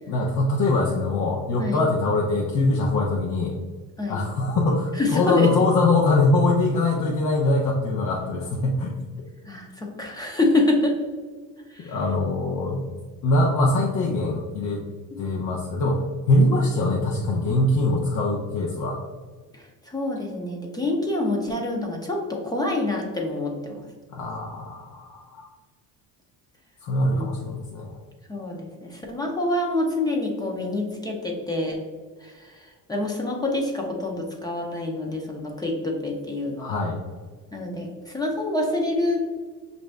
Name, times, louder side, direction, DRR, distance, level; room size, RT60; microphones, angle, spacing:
voice 1, 0.1-3.5 4.1-8.9 11.8-12.8 13.2-14.8 15.2-16.0 16.3-19.0 24.1-25.5 26.8-28.0 36.6-37.0, left 2 dB, 60° left, -2 dB, 0.7 m, -23 dB
voice 2, 5.0-5.5 9.5-11.0 11.7-12.0 15.1-15.2 19.5-23.8 27.1-27.3 28.3-31.8 32.2-36.7 37.5-39.2, left 2 dB, 10° left, 0 dB, 0.5 m, -26 dB
6.1 x 2.6 x 3.3 m, 1.5 s
cardioid pair, 160°, 33 cm